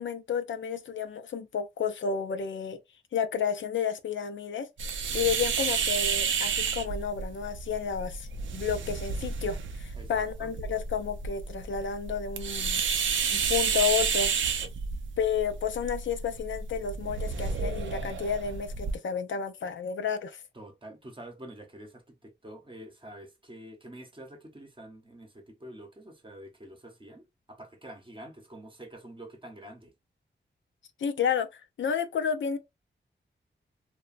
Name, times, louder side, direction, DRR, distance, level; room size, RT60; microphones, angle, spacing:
voice 1, 0.0-2.8 3.1-4.7 5.1-12.8 13.3-14.3 15.2-20.4 31.0-32.6, left 7 dB, 75° left, 0.4 m, -31 dB
sound 1, 4.8-19.0, right 6 dB, 85° right, 0.4 m, -31 dB
voice 2, 5.1-5.5 9.9-10.5 20.5-29.9, right 1 dB, 25° right, 0.7 m, -47 dB
3.0 x 2.1 x 2.4 m
wide cardioid pair, 85°, 19 cm